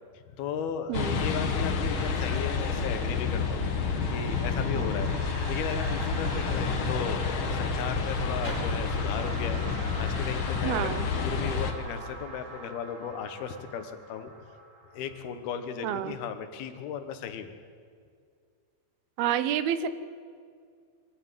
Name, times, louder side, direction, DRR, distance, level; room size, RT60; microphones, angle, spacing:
voice 1, 0.4-3.7 4.1-5.1 5.5-9.6 10.0-14.3 14.9-17.5, left 7 dB, 75° left, 9 dB, 3.3 m, -36 dB
sound 1, 0.9-11.7, left 5 dB, 55° left, 1.4 m, -29 dB
voice 2, 0.9-1.2 4.7-5.0 10.6-11.1 15.8-16.2 19.2-19.9, right 10 dB, 80° right, 13 dB, 2.8 m, -29 dB
sound 2, 1.8-15.5, right 2 dB, 25° right, 1.9 m, -44 dB
sound 3, 8.3-12.2, right 1 dB, 50° right, 9.3 m, -46 dB
23.0 x 15.0 x 9.2 m, 2.2 s
omnidirectional pair, 4.5 m